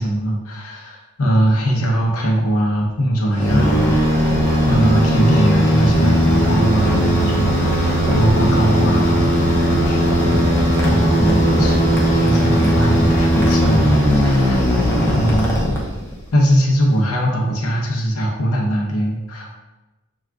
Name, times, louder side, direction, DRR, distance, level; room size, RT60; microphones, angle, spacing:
voice 1, 0.0-4.3 4.7-10.5 10.8-14.7 15.0-15.7 16.3-19.6, right 1 dB, 80° left, -2 dB, 0.8 m, -20 dB
sound 1, 3.4-16.2, equal, 10° left, 0.6 m, -17 dB
6.1 x 2.3 x 2.3 m, 1.1 s
head